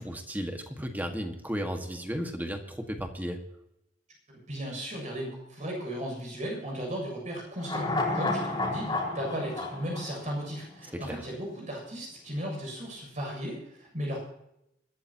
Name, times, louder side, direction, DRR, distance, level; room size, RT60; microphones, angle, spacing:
voice 1, 0.0-3.4 10.9-11.2, equal, 10° right, 4 dB, 1.7 m, -34 dB
voice 2, 4.3-14.2, equal, 40° right, -1 dB, 7.3 m, -36 dB
sound 1, 7.6-11.0 11.3-11.4, left 2 dB, 25° left, 4.9 m, -31 dB
25.0 x 13.0 x 2.9 m, 0.82 s
head